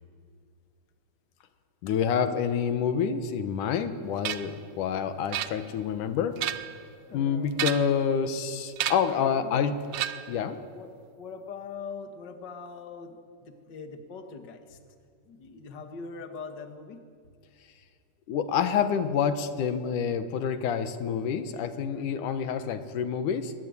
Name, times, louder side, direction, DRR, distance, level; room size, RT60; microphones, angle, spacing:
voice 1, 1.8-6.4 7.1-9.8 10.3-10.6 18.3-23.5, left 7 dB, 75° left, 10 dB, 2.7 m, -28 dB
sound 1, 4.2-4.6 5.3-5.9 6.3-6.8 7.5-8.1 8.8-9.2 9.9-10.4, right 12 dB, 70° right, 1.6 m, -32 dB
voice 2, 7.0-7.7 9.0-9.6 10.7-10.9 11.2-14.8 15.3-17.0, left 5 dB, 40° left, 6 dB, 2.0 m, -42 dB
23.5 x 20.5 x 9.7 m, 2.2 s
omnidirectional pair, 3.7 m